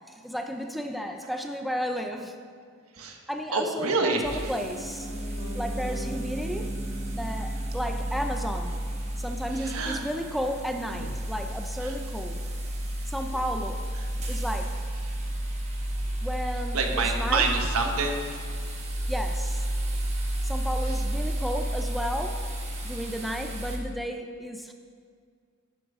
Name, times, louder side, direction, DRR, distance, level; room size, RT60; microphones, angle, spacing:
voice 1, 0.1-2.4 3.3-5.1 5.5-6.8 7.1-8.8 9.2-12.4 13.1-13.8 14.3-14.8 16.2-17.4 19.1-19.7 20.4-22.5 22.8-24.7, equal, ahead, 4 dB, 0.5 m, -33 dB
voice 2, 3.5-4.5 9.5-10.0 10.9-11.1 11.8-11.9 14.2-14.3 16.7-18.5 20.9-21.0, right 3 dB, 90° right, 2 dB, 1.3 m, -28 dB
sound 1, 4.2-23.8, right 1 dB, 30° right, 1.4 m, -32 dB
Piano, 4.6-14.6 14.9-15.0, right 1 dB, 75° left, 2.6 m, -43 dB
11.5 x 10.0 x 3.6 m, 2.1 s
head